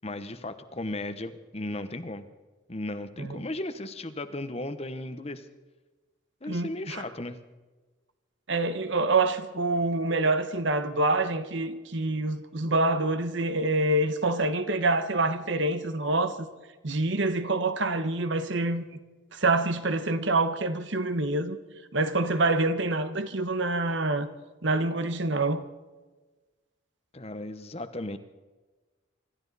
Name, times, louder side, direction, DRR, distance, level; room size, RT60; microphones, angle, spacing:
voice 1, 0.0-2.3 2.7-5.5 6.4-7.4 27.1-28.2, left 1 dB, 30° left, 0.9 m, -35 dB
voice 2, 6.5-7.0 8.5-16.4 16.8-18.8 19.3-21.6 21.9-24.3 24.6-25.6, right 2 dB, 60° right, 1.1 m, -26 dB
26.5 x 13.0 x 4.1 m
head